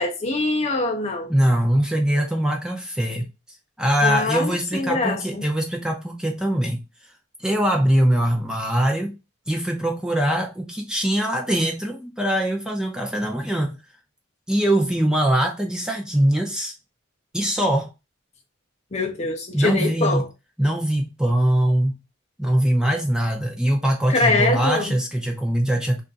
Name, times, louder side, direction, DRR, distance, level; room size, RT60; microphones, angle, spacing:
voice 1, 0.0-1.3 4.0-5.4 18.9-20.3 24.1-25.0, left 3 dB, 35° left, 0.6 m, -23 dB
voice 2, 1.3-3.3 3.8-6.8 7.4-9.1 9.5-13.7 14.5-16.7 17.3-17.9 19.5-20.2 20.6-21.9 22.4-26.0, right 1 dB, 5° right, 0.6 m, -22 dB
3.5 x 2.5 x 3.9 m
head